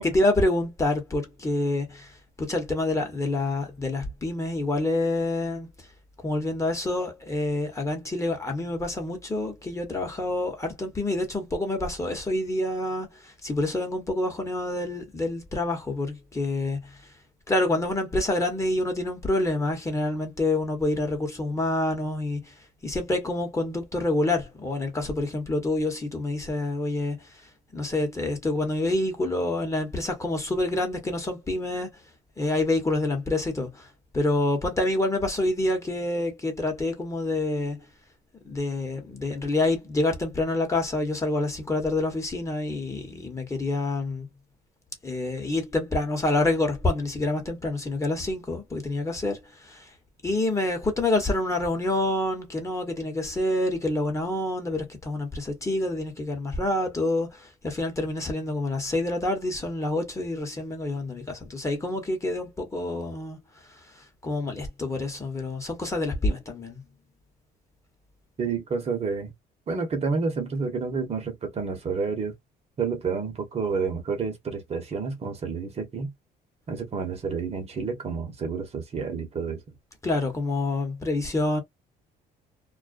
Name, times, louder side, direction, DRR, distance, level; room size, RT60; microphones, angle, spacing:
voice 1, 0.0-2.1 2.4-5.7 6.2-17.0 17.5-22.5 22.8-27.2 27.7-31.9 32.4-33.9 34.1-37.8 38.4-44.3 45.0-49.9 50.2-63.4 64.0-66.8 80.0-81.6, left 2 dB, 15° left, 1.0 m, -27 dB
voice 2, 68.4-69.3 69.7-72.3 72.8-76.1 76.7-79.6, right 5 dB, 40° right, 1.0 m, -29 dB
2.4 x 2.1 x 2.4 m
cardioid pair, 110°, 17 cm